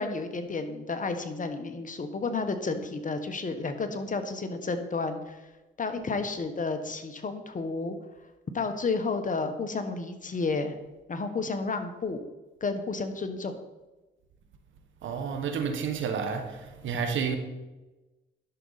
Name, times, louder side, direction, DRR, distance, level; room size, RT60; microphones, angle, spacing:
voice 1, 0.0-5.4 5.8-8.0 8.5-10.7 11.1-12.2 12.6-13.6, left 4 dB, 40° left, 1.2 m, -31 dB
voice 2, 15.0-17.4, right 6 dB, 75° right, 1.2 m, -30 dB
11.0 x 6.3 x 4.1 m
cardioid pair, 65°, 20 cm